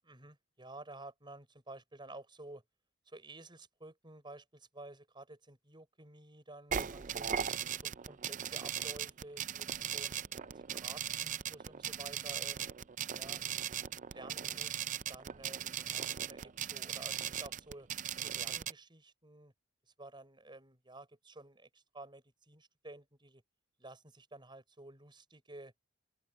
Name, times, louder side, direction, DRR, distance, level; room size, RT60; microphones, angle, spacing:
voice 1, 0.0-2.6 3.1-7.3 7.8-9.7 9.9-10.2 10.7-12.7 13.1-13.4 14.1-17.9 18.2-19.5 20.0-23.4 23.8-25.7, right 2 dB, 25° right, 5.8 m, -52 dB
sound 1, 6.7-18.7, right 9 dB, 40° right, 0.5 m, -38 dB
open air
head